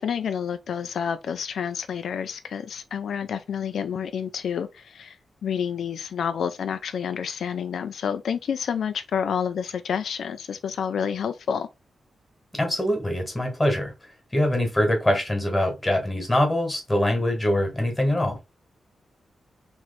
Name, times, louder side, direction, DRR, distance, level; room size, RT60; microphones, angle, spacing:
voice 1, 0.0-5.2 5.4-11.7, left 7 dB, 75° left, 0.3 m, -29 dB
voice 2, 12.5-13.9 14.3-18.4, left 1 dB, 10° left, 1.3 m, -23 dB
3.1 x 3.0 x 3.9 m
wide cardioid pair, 165°, 0 cm